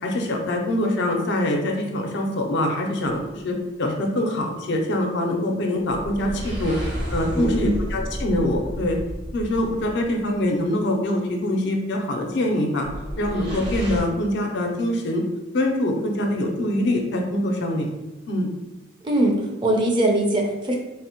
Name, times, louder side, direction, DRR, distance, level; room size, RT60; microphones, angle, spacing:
voice 1, 0.0-9.0 9.3-12.9 13.2-15.2 15.5-17.9 18.3-18.5, left 1 dB, 65° left, 2 dB, 0.5 m, -24 dB
sound 1, 5.9-10.4 12.8-14.0, equal, 65° right, 1.1 m, -31 dB
voice 2, 7.3-7.8 19.0-20.8, right 1 dB, 25° right, 0 dB, 0.5 m, -21 dB
3.4 x 2.0 x 2.8 m, 1.0 s
head